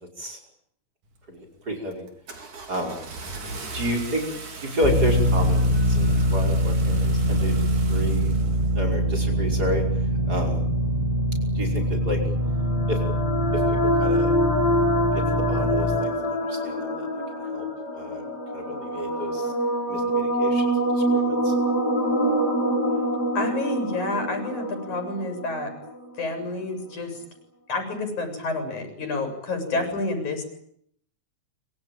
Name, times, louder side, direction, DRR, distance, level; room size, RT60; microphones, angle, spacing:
Car / Engine starting, 1.1-1.5 1.9-8.9, right 3 dB, 75° right, 5.9 m, -39 dB
voice 1, 1.3-2.0 2.7-3.1 3.7-4.2 4.6-7.5 7.9-8.4 8.7-9.8 10.3-10.6 11.5-12.2 12.9-13.0 13.5-14.3 15.1-17.1 17.4-17.7 17.9-18.2 18.5-19.5 19.9-21.5 29.7-29.9, equal, 30° right, 5 dB, 5.7 m, -31 dB
sound 1, 4.8-16.0, equal, 10° right, 6.1 m, -23 dB
sound 2, 12.0-26.1, equal, 30° left, 8.0 m, -25 dB
voice 2, 23.4-25.7 26.2-27.2 27.7-30.4, left 2 dB, 70° left, 7 dB, 9.1 m, -29 dB
26.0 x 24.5 x 9.2 m, 0.69 s
omnidirectional pair, 3.5 m